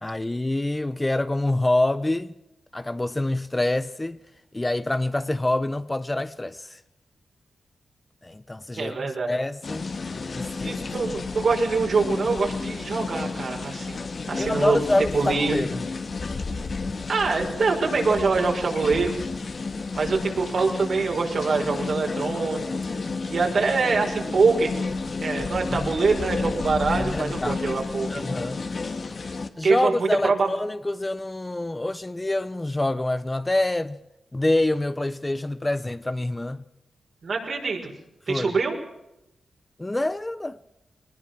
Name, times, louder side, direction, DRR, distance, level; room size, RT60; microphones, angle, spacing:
voice 1, 0.0-2.3 2.7-4.2 4.5-6.8 8.2-9.9 10.3-10.8 14.4-15.8 25.6-25.9 26.9-27.6 28.1-28.6 29.6-34.0 34.3-36.6 38.3-38.5 39.8-40.6, left 1 dB, 20° left, 0.9 m, -26 dB
voice 2, 8.8-9.3 10.6-14.8 15.1-15.7 17.1-19.2 20.0-23.0 23.3-24.8 25.2-28.1 29.6-30.5 37.2-37.9 38.3-38.8, right 4 dB, 65° right, 5.6 m, -24 dB
sound 1, 9.6-29.5, left 4 dB, 55° left, 1.9 m, -31 dB
22.0 x 19.5 x 6.1 m
cardioid pair, 60°, 0 cm